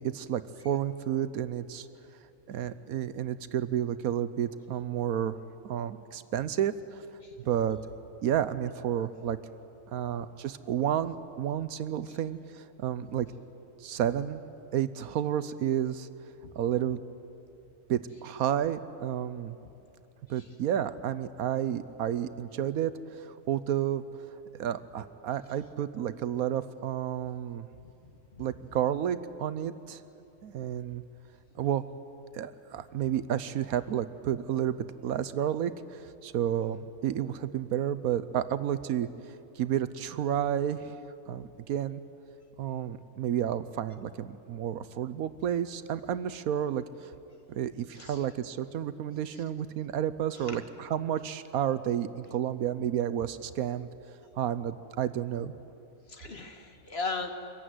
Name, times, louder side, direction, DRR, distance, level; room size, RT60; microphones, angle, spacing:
voice 1, 0.0-1.9 2.5-5.4 5.6-7.1 7.4-7.8 8.2-9.4 9.9-13.3 13.8-14.4 14.7-16.1 16.6-17.0 17.9-19.5 20.3-24.0 24.6-27.7 28.4-30.0 30.4-31.0 31.6-31.9 32.3-39.1 39.6-40.9 41.3-42.0 42.6-47.1 47.5-53.9 54.4-55.5, right 10 dB, 75° right, 14 dB, 1.1 m, -31 dB
voice 2, 28.0-28.5 47.9-48.3 49.3-49.4 50.3-50.6 56.1-57.3, left 3 dB, 45° left, 5 dB, 1.7 m, -39 dB
24.5 x 15.0 x 9.5 m, 2.8 s
omnidirectional pair, 1.6 m